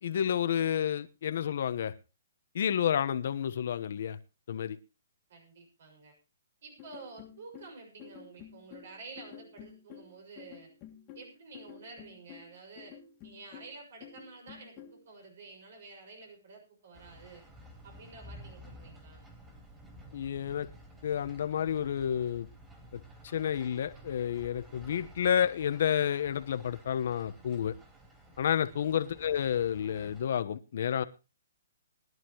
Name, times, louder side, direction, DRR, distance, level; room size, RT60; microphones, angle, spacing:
voice 1, 0.0-1.9 2.5-4.2 4.5-4.8 20.1-20.7 21.0-22.5 22.9-23.0 23.3-27.7 28.4-31.0, left 9 dB, 60° left, 1.2 m, -30 dB
voice 2, 5.3-6.1 6.6-10.7 11.1-13.0 13.2-17.4 17.8-19.2 28.6-28.9, right 3 dB, 60° right, 6.3 m, -50 dB
sound 1, 6.8-15.0, left 8 dB, 30° left, 2.0 m, -51 dB
sound 2, 16.9-30.2, right 1 dB, 10° right, 3.6 m, -53 dB
21.0 x 11.0 x 3.1 m
hypercardioid pair, 150°, 0 cm